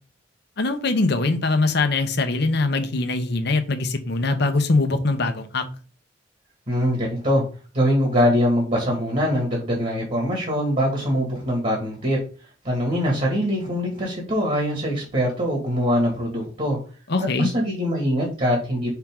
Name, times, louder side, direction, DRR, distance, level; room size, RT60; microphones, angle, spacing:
voice 1, 0.6-5.7 17.1-17.5, left 3 dB, 65° left, 8 dB, 0.9 m, -22 dB
voice 2, 6.7-7.4 7.7-12.2 12.6-16.8 17.4-18.9, equal, 45° right, -2 dB, 2.1 m, -23 dB
5.8 x 4.5 x 3.7 m, 0.36 s
head